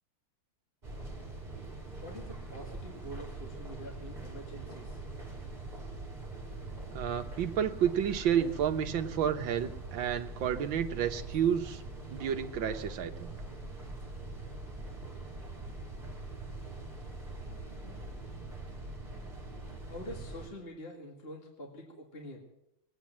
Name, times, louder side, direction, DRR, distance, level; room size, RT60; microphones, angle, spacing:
Subway Signal at Platform, 0.8-20.5, right 2 dB, 20° right, 3.3 m, -43 dB
voice 1, 2.0-5.0 19.9-22.4, equal, 30° left, 0 dB, 2.2 m, -46 dB
voice 2, 6.9-11.8 12.1-13.3, right 9 dB, 65° right, 7 dB, 1.7 m, -30 dB
21.5 x 9.2 x 7.4 m, 0.82 s
omnidirectional pair, 2.3 m